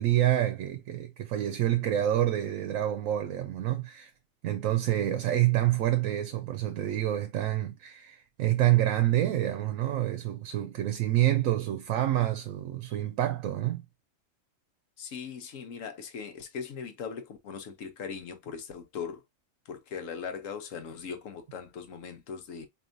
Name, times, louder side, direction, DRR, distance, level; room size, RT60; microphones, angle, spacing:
voice 1, 0.0-4.1 4.4-13.8, right 13 dB, 85° right, 1.0 m, -27 dB
voice 2, 15.0-19.2 19.7-22.7, left 6 dB, 80° left, 1.2 m, -39 dB
4.5 x 2.9 x 2.6 m
omnidirectional pair, 1.3 m